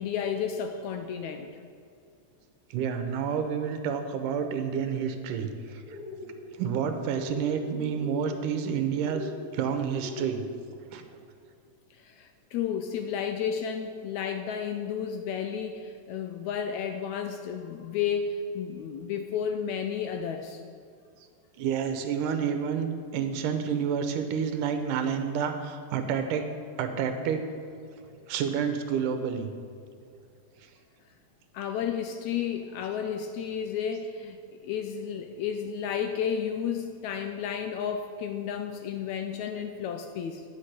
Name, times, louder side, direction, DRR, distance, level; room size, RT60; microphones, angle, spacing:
voice 1, 0.0-1.5 11.9-20.6 31.5-40.4, left 7 dB, 80° left, 6 dB, 1.7 m, -32 dB
voice 2, 2.7-6.0 6.6-10.5 10.9-11.0 21.6-26.5 26.8-27.4 28.3-29.5, right 7 dB, 85° right, 7 dB, 2.4 m, -29 dB
sound 1, 5.8-6.3 7.1-7.6 7.8-8.3 9.0-9.4 10.0-10.5, left 4 dB, 5° right, 1.2 m, -39 dB
10.5 x 6.0 x 8.2 m, 2.4 s
omnidirectional pair, 3.7 m